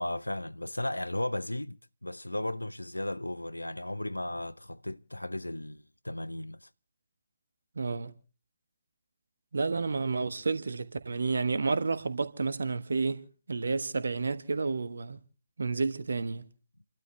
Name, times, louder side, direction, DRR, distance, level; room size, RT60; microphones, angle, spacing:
voice 1, 0.0-6.7, left 1 dB, 85° left, 0.7 m, -35 dB
voice 2, 7.7-8.1 9.5-15.2 15.6-16.5, right 4 dB, 65° right, 1.3 m, -30 dB
29.5 x 12.5 x 3.3 m
figure-of-eight pair, 135°, 0 cm